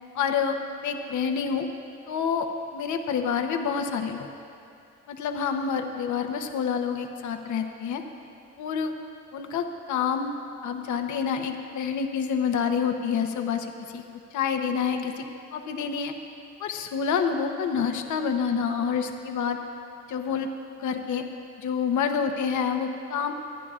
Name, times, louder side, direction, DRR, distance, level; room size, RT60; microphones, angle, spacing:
voice 1, 0.1-1.7 2.1-4.3 5.1-8.0 8.6-8.9 9.3-10.3 10.6-13.7 13.9-14.0 14.3-15.2 15.5-16.1 16.6-19.6 20.1-20.5 20.8-21.2 21.6-23.3, left 6 dB, 75° left, 5 dB, 0.9 m, -27 dB
27.5 x 9.9 x 2.5 m, 2.5 s
cardioid pair, 90°, 30 cm